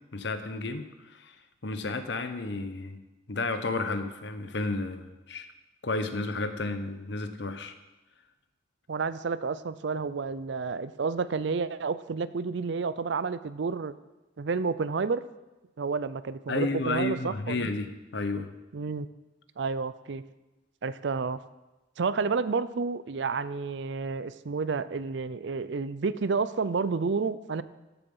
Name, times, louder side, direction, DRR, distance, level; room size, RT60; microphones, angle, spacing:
voice 1, 0.1-1.3 1.6-3.0 3.3-5.5 5.8-7.7 16.5-18.5, left 3 dB, 60° left, 9 dB, 0.9 m, -32 dB
voice 2, 8.9-13.9 14.4-15.2 15.8-17.7 18.7-19.1 19.6-20.2 20.8-21.4 22.0-27.6, right 4 dB, 65° right, 15 dB, 0.5 m, -30 dB
14.0 x 7.1 x 5.4 m, 1.1 s
head